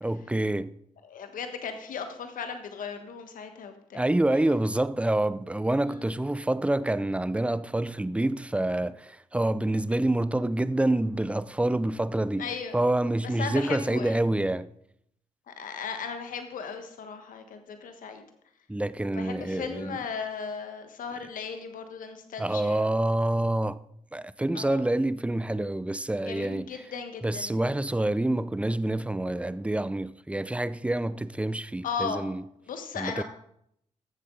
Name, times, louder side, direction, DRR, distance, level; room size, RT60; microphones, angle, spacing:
voice 1, 0.0-0.7 3.9-14.7 18.7-20.0 22.4-23.8 24.1-26.7 27.2-32.4 33.0-33.2, right 1 dB, 10° right, 0.5 m, -27 dB
voice 2, 1.0-4.0 4.3-4.4 5.8-6.1 12.4-12.8 13.2-14.3 15.5-18.2 19.0-23.0 24.5-24.8 26.2-27.6 31.8-32.3 32.6-33.2, left 6 dB, 75° left, 1.3 m, -37 dB
13.5 x 7.5 x 3.8 m
supercardioid pair, 50°, 14 cm